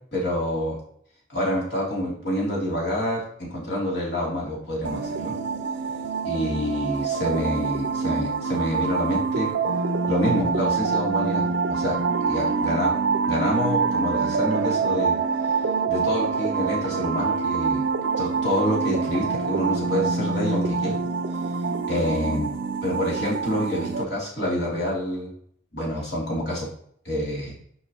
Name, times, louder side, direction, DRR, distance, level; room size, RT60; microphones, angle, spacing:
voice 1, 0.1-0.8 1.3-5.3 6.2-9.5 10.1-12.0 12.2-12.9 13.3-15.2 15.9-17.8 18.2-21.0 21.9-22.5 22.8-25.3 25.7-26.7 27.0-27.5, equal, 65° left, -4 dB, 2.9 m, -27 dB
sound 1, 4.8-24.0, right 5 dB, 80° right, 0.5 m, -25 dB
7.2 x 5.8 x 2.9 m, 0.63 s
head